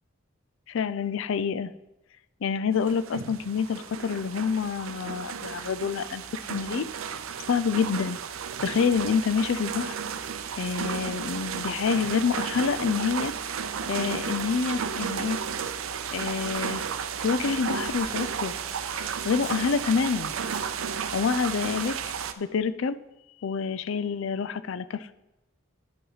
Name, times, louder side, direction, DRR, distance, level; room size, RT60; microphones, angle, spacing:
voice 1, 0.7-1.7 2.4-6.9 7.5-8.2 8.6-10.0 10.6-15.4 16.1-16.8 17.2-18.5 18.8-20.3 21.1-22.0 22.4-23.0 23.4-25.1, left 6 dB, 65° left, 13 dB, 0.4 m, -27 dB
sound 1, 2.8-22.3, right 7 dB, 75° right, 0.5 m, -33 dB
sound 2, 17.3-19.0 19.4-19.6 20.3-21.0 21.3-21.6 21.8-21.9 22.1-22.6, left 2 dB, 85° left, 3.9 m, -51 dB
9.0 x 5.6 x 5.6 m, 0.95 s
head